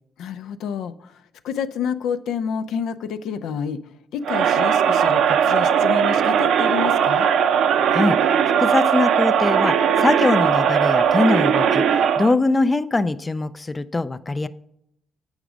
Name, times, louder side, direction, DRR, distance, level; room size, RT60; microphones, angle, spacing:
voice 1, 0.2-3.8 4.1-7.3, left 7 dB, 80° left, 10 dB, 0.5 m, -29 dB
Crowd, 4.2-12.4, right 8 dB, 75° right, 0.5 m, -19 dB
voice 2, 7.9-8.3 8.6-14.5, left 2 dB, 20° left, 12 dB, 0.4 m, -22 dB
8.0 x 4.9 x 6.2 m, 0.76 s
cardioid pair, 90°, 0 cm